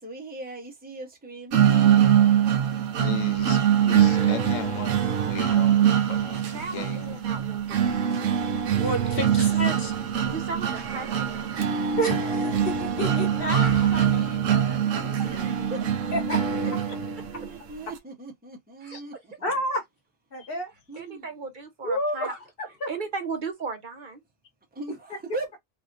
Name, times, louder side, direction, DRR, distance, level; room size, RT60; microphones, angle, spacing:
voice 1, 0.0-1.6 15.4-16.1 17.3-19.1 20.9-21.2 24.7-25.5, right 2 dB, 10° right, 0.8 m, -39 dB
sound 1, 1.5-17.5, right 9 dB, 80° right, 1.0 m, -23 dB
voice 2, 3.0-4.9 5.3-7.2, left 9 dB, 90° left, 1.1 m, -37 dB
voice 3, 6.5-8.0 9.2-9.3 10.2-11.4 15.2-15.9 18.8-19.2 21.0-22.3 22.9-24.2, right 4 dB, 45° right, 0.8 m, -36 dB
voice 4, 8.8-9.9 12.0-15.4 16.1-16.4 18.9-19.0 19.4-19.8 20.3-20.7 21.8-22.9, equal, 50° left, 1.2 m, -30 dB
3.1 x 2.7 x 2.5 m
omnidirectional pair, 1.3 m